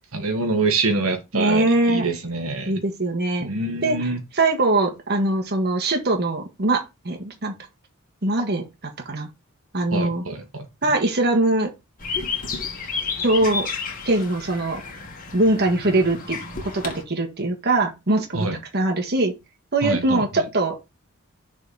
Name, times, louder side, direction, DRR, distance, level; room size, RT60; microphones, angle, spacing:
voice 1, 0.1-2.8 3.4-4.2 9.9-10.7 18.3-18.6 19.8-20.2, right 3 dB, 75° right, 1.5 m, -25 dB
voice 2, 1.3-2.2 2.6-3.5 3.8-7.6 8.2-8.6 9.0-9.3 9.7-10.2 10.8-11.7 13.2-13.7 14.0-14.8 15.3-16.4 16.6-19.3 19.7-20.8, right 2 dB, 50° right, 1.6 m, -22 dB
sound 1, 12.0-17.0, left 5 dB, 40° left, 2.0 m, -31 dB
6.8 x 4.1 x 5.4 m
head